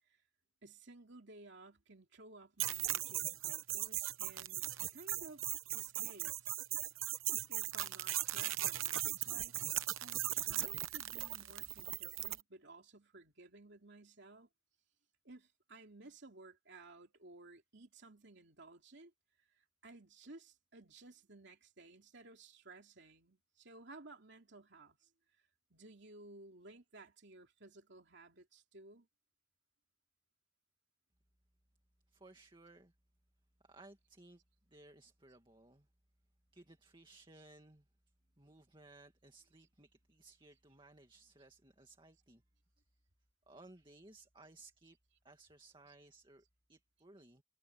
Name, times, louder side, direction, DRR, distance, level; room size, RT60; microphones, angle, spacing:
voice 1, 0.6-4.7 4.9-5.4 5.7-6.6 7.5-9.5 10.0-14.5 15.2-19.1 19.5-25.1 25.7-29.1, right 2 dB, 55° right, 3.1 m, -57 dB
sound 1, 2.6-12.4, right 14 dB, 75° right, 0.9 m, -38 dB
voice 2, 32.1-32.9 33.6-34.4 34.7-35.9 36.5-37.9 38.4-42.4 43.5-45.0 45.2-47.4, right 2 dB, 25° right, 2.2 m, -60 dB
head